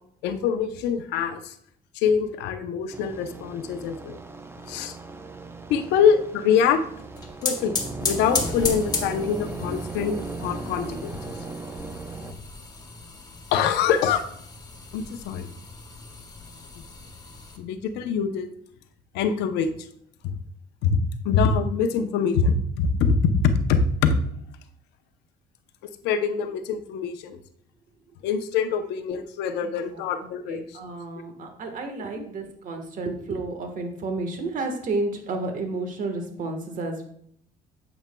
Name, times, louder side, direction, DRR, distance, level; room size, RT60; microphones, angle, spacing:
voice 1, 0.2-1.5 1.9-4.2 4.7-4.9 5.7-6.8 7.4-11.3 12.2-12.3 13.5-14.3 14.9-15.5 17.6-18.5 19.1-19.7 20.2-20.3 20.8-24.1 26.0-27.4 28.2-30.6 32.2-32.3, left 6 dB, 90° left, 8 dB, 0.7 m, -24 dB
sound 1, 2.9-12.3, right 3 dB, 15° right, 0.6 m, -37 dB
sound 2, 7.0-17.6, left 4 dB, 25° left, 1.3 m, -35 dB
voice 2, 29.6-37.0, right 3 dB, 50° right, 5 dB, 1.4 m, -31 dB
9.0 x 7.1 x 2.2 m, 0.67 s
cardioid pair, 110°, 17 cm